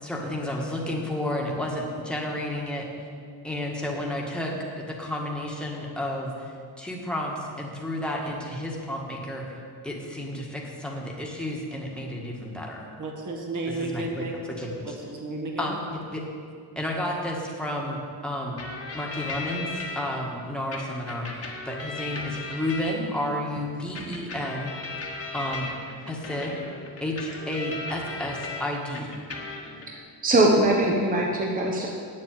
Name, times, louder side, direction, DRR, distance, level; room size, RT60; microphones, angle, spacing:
voice 1, 0.0-2.9 3.4-9.6 9.8-12.9 13.8-14.3 14.6-14.9 15.6-16.2 16.8-18.6 18.9-24.7 25.3-25.7 26.1-26.6 27.0-29.1, left 1 dB, ahead, -2 dB, 1.7 m, -31 dB
voice 2, 13.0-14.4 14.8-15.8, right 2 dB, 50° right, 1 dB, 1.8 m, -33 dB
sound 1, 18.6-20.0 20.7-23.3 23.9-28.6 28.9-29.9, left 3 dB, 35° left, 1.6 m, -37 dB
voice 3, 30.2-31.9, right 1 dB, 20° right, -2 dB, 1.1 m, -21 dB
9.0 x 7.6 x 8.9 m, 2.2 s
wide cardioid pair, 155°, 40 cm